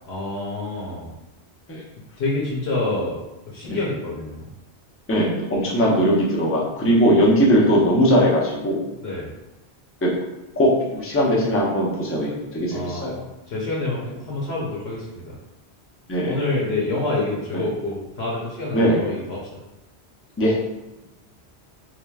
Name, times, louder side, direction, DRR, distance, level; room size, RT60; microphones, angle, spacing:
voice 1, 0.0-1.1 2.2-3.2 3.5-4.5 9.0-9.3 12.7-13.1 13.5-15.4 16.3-19.4, left 2 dB, 70° left, -4 dB, 1.0 m, -27 dB
voice 2, 5.1-8.8 10.0-10.1 10.6-13.2 16.1-16.4 17.5-17.6 18.7-19.0 20.4-20.5, equal, 15° left, -4 dB, 0.5 m, -19 dB
3.9 x 3.1 x 2.3 m, 1.0 s
omnidirectional pair, 1.1 m